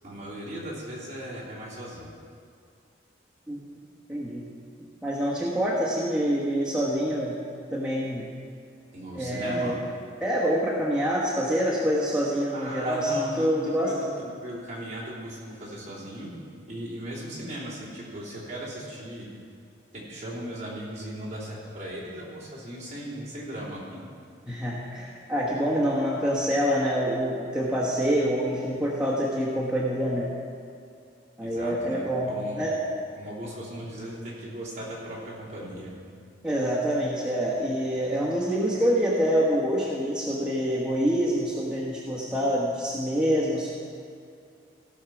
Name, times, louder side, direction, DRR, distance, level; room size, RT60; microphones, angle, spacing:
voice 1, 0.0-2.1 8.9-9.8 12.5-16.3 16.7-19.3 19.9-24.0 31.4-32.6 33.2-35.9, right 1 dB, 35° right, -7 dB, 3.1 m, -37 dB
voice 2, 4.1-4.4 5.0-7.3 7.7-8.2 9.1-9.7 10.2-13.9 24.5-30.3 31.4-32.7 36.4-43.7, equal, 5° right, -8 dB, 1.2 m, -26 dB
16.5 x 6.5 x 5.9 m, 2.4 s
head